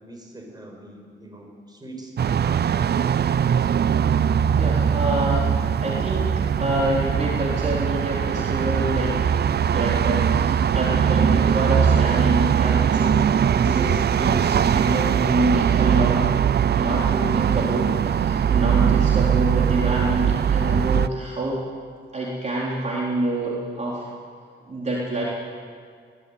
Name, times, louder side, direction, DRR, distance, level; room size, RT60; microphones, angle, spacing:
voice 1, 0.0-3.7, right 1 dB, 20° right, 1 dB, 5.7 m, -42 dB
sound 1, 2.2-21.1, right 8 dB, 55° right, 0.5 m, -21 dB
voice 2, 4.5-9.2 9.7-13.2 13.5-16.3 16.8-21.6 22.1-24.0 24.7-25.2, right 1 dB, 35° right, -5 dB, 3.9 m, -26 dB
21.0 x 17.0 x 9.3 m, 2.1 s
wide cardioid pair, 115°, 20 cm